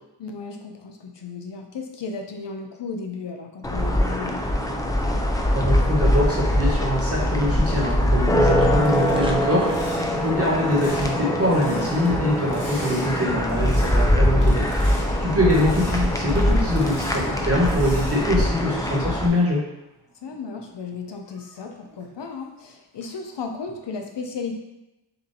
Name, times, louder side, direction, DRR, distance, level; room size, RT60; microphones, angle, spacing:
voice 1, 0.2-4.4 14.2-14.5 20.2-24.6, left 4 dB, 65° left, 4 dB, 0.7 m, -34 dB
sound 1, 3.6-19.3, left 1 dB, 10° left, 0.4 m, -22 dB
voice 2, 5.5-9.7 10.1-14.6 15.2-19.6, left 1 dB, 30° right, -3 dB, 1.4 m, -23 dB
sound 2, 7.0-14.9, equal, 10° right, 0.9 m, -43 dB
sound 3, 8.5-19.6 20.0-22.6 23.0-23.3 23.7-23.9, left 1 dB, 40° left, 1.1 m, -43 dB
6.9 x 2.6 x 2.8 m, 0.96 s
wide cardioid pair, 65°, 45 cm